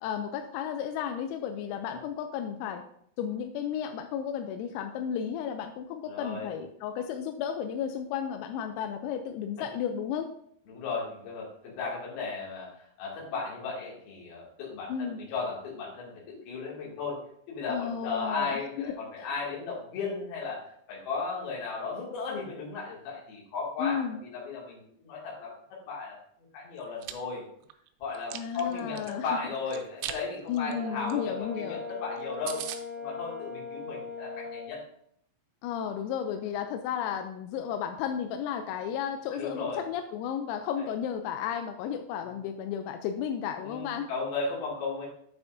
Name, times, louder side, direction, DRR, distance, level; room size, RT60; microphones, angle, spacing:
voice 1, 0.0-2.8 3.2-10.3 14.9-15.2 17.7-19.3 23.8-24.2 28.3-29.4 30.5-31.8 35.6-44.1, left 8 dB, 85° left, 7 dB, 3.3 m, -33 dB
voice 2, 6.0-6.5 10.7-17.2 17.5-20.6 20.9-25.5 25.9-26.2 26.5-27.4 28.0-32.6 33.0-34.8 39.3-39.8 40.8-40.9 42.3-42.4 43.6-45.1, left 4 dB, 55° left, -4 dB, 3.7 m, -35 dB
Chewing mastication, 26.8-27.1 27.6-29.1 29.7-30.2 30.5-30.7 31.1-31.2 31.4-31.5 31.9-32.0 32.2-32.3 32.5-32.8, right 12 dB, 85° right, 3.3 m, -38 dB
Brass instrument, 30.6-34.7, left 4 dB, 60° right, 3.6 m, -39 dB
9.2 x 6.9 x 2.6 m, 0.67 s
omnidirectional pair, 6.0 m